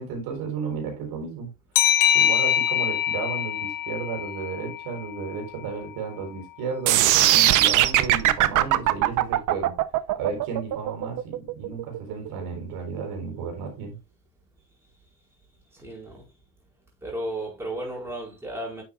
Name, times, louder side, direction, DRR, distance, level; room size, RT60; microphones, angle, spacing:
voice 1, 0.0-1.5 2.1-9.8 10.1-14.0, right 5 dB, 85° right, 4.1 m, -33 dB
sound 1, 1.8-5.1, left 11 dB, 75° left, 0.8 m, -23 dB
sound 2, 6.9-12.9, right 14 dB, 60° right, 0.8 m, -20 dB
voice 2, 15.7-16.3 17.0-18.8, right 1 dB, 5° right, 4.9 m, -34 dB
9.6 x 7.3 x 2.4 m
cardioid pair, 130°, 35 cm